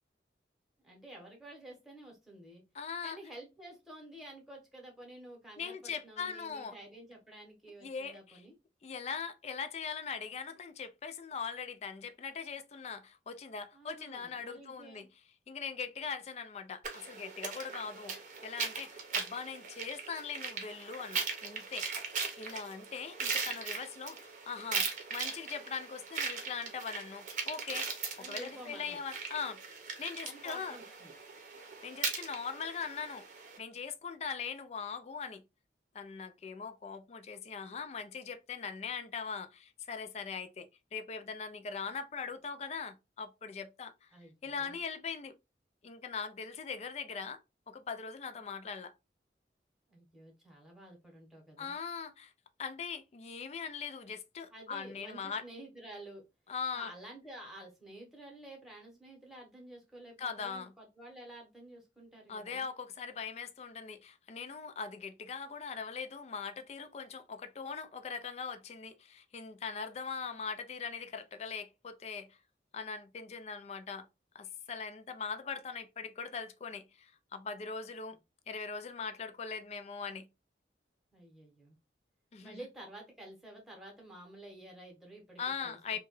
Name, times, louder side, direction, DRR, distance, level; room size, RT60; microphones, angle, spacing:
voice 1, 0.8-2.6 3.0-8.5 13.7-15.1 28.2-29.0 30.2-31.1 44.1-44.8 49.9-51.7 54.5-56.2 56.7-62.7 81.1-81.8 82.4-86.0, right 1 dB, ahead, 0.9 m, -51 dB
voice 2, 2.7-3.2 5.6-6.7 7.8-8.4 8.8-15.1 15.5-21.9 22.4-27.9 28.2-29.6 30.0-30.8 31.8-33.2 33.6-35.4 35.9-44.1 44.4-45.3 45.8-47.4 47.7-48.9 51.6-52.3 52.6-55.4 56.5-56.9 60.2-60.7 62.3-72.4 72.7-74.1 74.3-78.2 78.5-80.3 82.3-82.7 85.4-86.0, left 5 dB, 35° left, 0.3 m, -41 dB
sound 1, 16.8-33.6, right 5 dB, 45° right, 0.7 m, -39 dB
2.9 x 2.2 x 3.0 m
head